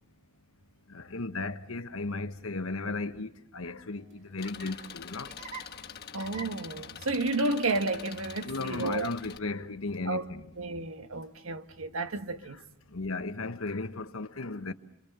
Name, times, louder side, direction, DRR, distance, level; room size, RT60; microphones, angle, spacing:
voice 1, 0.9-5.3 8.4-10.4 12.9-14.7, left 3 dB, 85° left, 1.2 m, -35 dB
Laughter, 3.8-11.4, right 3 dB, 35° right, 2.9 m, -51 dB
Engine, 4.4-9.4, left 8 dB, 50° left, 1.5 m, -45 dB
voice 2, 6.1-9.1 10.0-10.2 10.6-12.6, right 2 dB, 90° right, 1.4 m, -31 dB
27.0 x 25.0 x 6.8 m
head